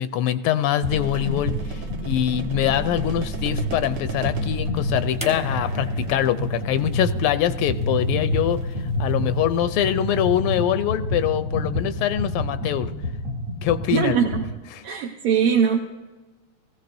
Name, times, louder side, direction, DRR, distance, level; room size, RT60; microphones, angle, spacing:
voice 1, 0.0-8.6 9.0-12.9 13.6-14.2 14.7-14.8, left 11 dB, 85° left, 12 dB, 1.5 m, -24 dB
sound 1, 0.8-1.0 1.2-14.5, left 1 dB, 40° right, 1.4 m, -28 dB
sound 2, 0.8-10.4, right 3 dB, 70° right, 0.7 m, -35 dB
sound 3, 5.2-8.4 9.6-9.7, left 1 dB, 10° right, 0.4 m, -39 dB
voice 2, 13.9-14.5 14.8-15.8, right 7 dB, 90° right, 2 dB, 1.8 m, -21 dB
17.5 x 15.0 x 2.6 m, 1.2 s
omnidirectional pair, 2.4 m